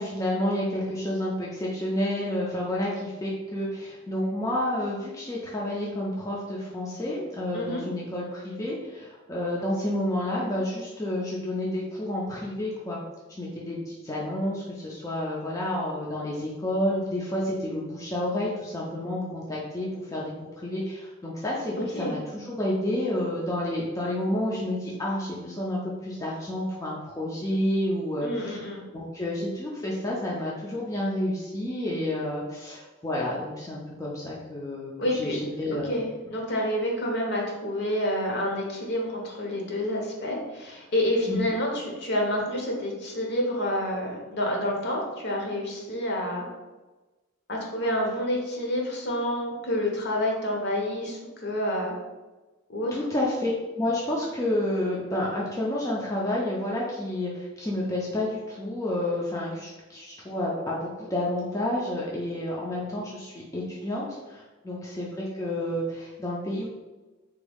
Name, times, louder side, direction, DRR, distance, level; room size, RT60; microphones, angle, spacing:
voice 1, 0.0-13.0 13.3-20.3 20.6-28.6 28.9-36.0 41.3-41.4 52.9-66.7, left 1 dB, 15° left, -4 dB, 0.4 m, -30 dB
voice 2, 7.5-7.8 21.9-22.2 28.2-28.8 35.0-35.5 35.9-46.5 47.5-52.0 52.7-52.9, left 1 dB, 55° left, -1 dB, 0.7 m, -28 dB
3.5 x 2.2 x 3.4 m, 1.2 s
head